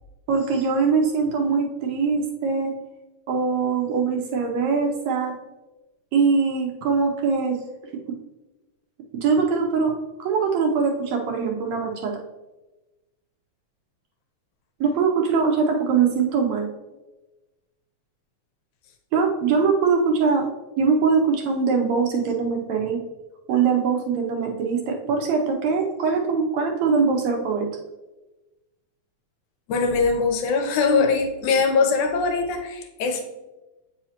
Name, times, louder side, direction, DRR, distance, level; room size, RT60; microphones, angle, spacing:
voice 1, 0.3-2.7 3.3-5.3 6.1-7.6 8.1-8.2 9.1-9.9 10.2-12.2 14.8-16.7 19.1-20.5 20.8-23.0 23.5-27.7, right 5 dB, 75° right, 1 dB, 1.8 m, -22 dB
voice 2, 29.7-33.2, left 4 dB, 80° left, 5 dB, 2.1 m, -22 dB
8.1 x 4.9 x 2.8 m, 1.1 s
omnidirectional pair, 3.5 m